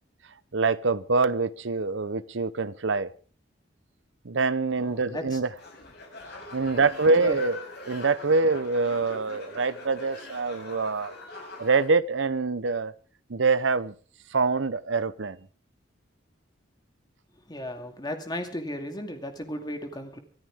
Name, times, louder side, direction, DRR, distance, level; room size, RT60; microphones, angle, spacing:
voice 1, 0.5-3.1 4.2-5.5 6.5-7.6 7.9-11.1 11.6-12.9 13.3-13.9 14.3-15.4, right 4 dB, 70° right, 0.8 m, -25 dB
voice 2, 4.8-5.4 7.2-7.4 17.5-20.2, left 1 dB, 20° left, 2.4 m, -35 dB
sound 1, 5.6-11.9, left 2 dB, 55° left, 6.7 m, -42 dB
24.0 x 14.5 x 3.6 m
head